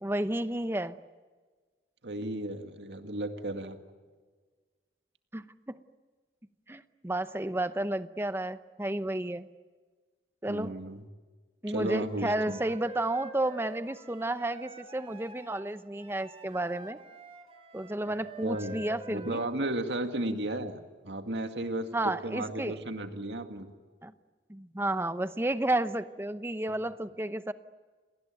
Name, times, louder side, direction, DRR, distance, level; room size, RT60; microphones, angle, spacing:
voice 1, 0.0-1.0 5.3-5.8 6.7-9.5 10.4-10.7 11.6-17.0 17.7-19.4 21.9-22.8 24.0-24.1 24.5-27.5, right 1 dB, 15° right, 12 dB, 0.8 m, -32 dB
voice 2, 2.0-3.8 10.5-11.0 11.7-12.6 18.1-18.2 18.4-23.7, right 1 dB, 85° right, 6 dB, 2.2 m, -34 dB
Wind instrument woodwind instrument, 11.8-20.1, right 1 dB, 35° right, 3.9 m, -47 dB
29.5 x 19.5 x 9.2 m, 1.4 s
head